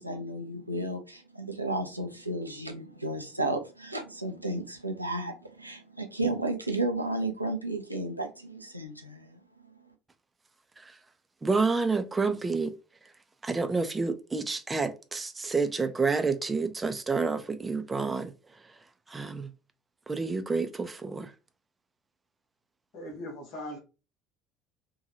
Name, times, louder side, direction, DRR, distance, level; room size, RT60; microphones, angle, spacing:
voice 1, 0.0-9.4, right 2 dB, 90° right, 0.4 m, -33 dB
voice 2, 11.4-12.7 13.4-18.8 19.1-19.5 20.1-21.3, right 4 dB, 20° right, 0.4 m, -29 dB
voice 3, 22.9-23.8, left 1 dB, 55° left, 1.1 m, -39 dB
2.7 x 2.3 x 2.7 m
figure-of-eight pair, 65°, 0 cm